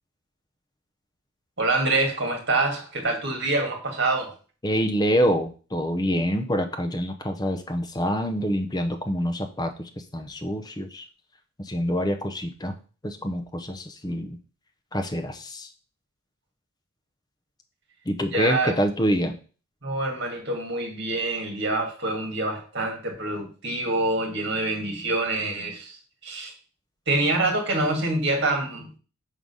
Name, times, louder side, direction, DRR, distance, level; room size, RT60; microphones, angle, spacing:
voice 1, 1.6-4.3 18.3-18.7 19.8-26.0 26.2-26.5 27.1-28.9, right 2 dB, 50° right, 1.9 m, -26 dB
voice 2, 4.6-9.7 10.1-11.0 11.7-12.7 13.0-14.4 14.9-15.7 18.1-19.4, equal, 20° left, 0.7 m, -26 dB
6.4 x 3.9 x 5.4 m
head